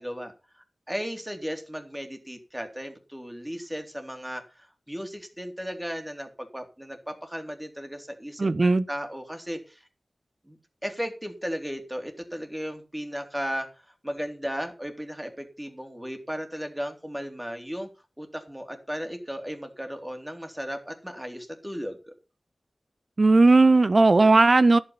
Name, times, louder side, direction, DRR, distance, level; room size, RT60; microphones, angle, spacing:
voice 1, 0.0-9.9 10.5-17.9 18.2-22.1, equal, 10° right, 3.7 m, -36 dB
voice 2, 8.4-8.9 23.2-24.8, right 3 dB, 55° right, 0.8 m, -17 dB
11.0 x 9.1 x 5.7 m
cardioid pair, 40°, 0 cm